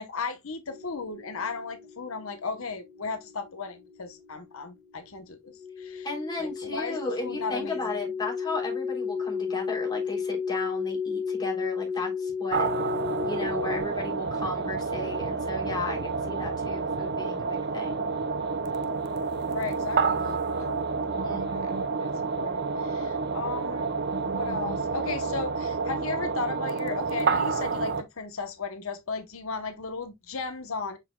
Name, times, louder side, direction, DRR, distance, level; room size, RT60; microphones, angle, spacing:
voice 1, 0.0-6.1 6.4-8.0 19.4-23.9 24.2-31.0, left 4 dB, 80° left, 1.0 m, -36 dB
sound 1, 0.7-13.8, left 6 dB, 30° right, 3.0 m, -34 dB
voice 2, 6.0-12.7 13.2-18.1 21.2-21.5, left 2 dB, 20° left, 3.2 m, -35 dB
sound 2, 12.5-28.0, right 4 dB, 50° right, 0.8 m, -29 dB
7.3 x 5.9 x 2.3 m
head